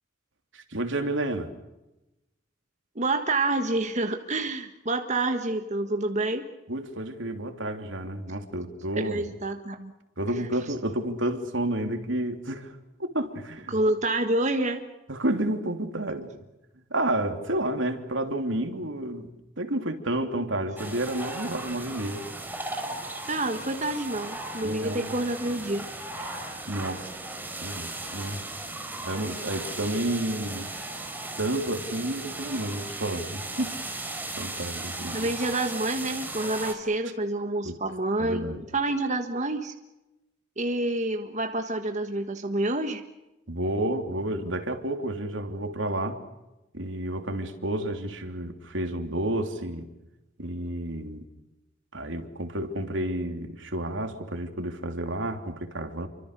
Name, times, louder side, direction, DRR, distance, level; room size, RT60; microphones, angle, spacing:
voice 1, 0.5-1.5 6.7-9.3 10.2-12.7 13.0-13.7 15.1-16.3 16.9-19.3 19.6-22.2 24.6-25.1 26.7-27.1 27.6-28.4 29.0-30.7 31.4-33.8 34.4-35.3 37.6-37.8 38.2-38.6 43.5-46.2 46.7-49.9 50.4-51.2 51.9-56.1, right 1 dB, 75° right, 6 dB, 3.2 m, -30 dB
voice 2, 2.9-6.4 9.0-9.9 13.7-14.8 23.3-25.9 26.2-26.3 35.1-39.7 40.6-43.0, right 2 dB, 40° right, 5 dB, 1.5 m, -28 dB
sound 1, 20.8-36.7, right 2 dB, 10° right, 4.0 m, -37 dB
29.0 x 25.0 x 6.8 m, 0.98 s
head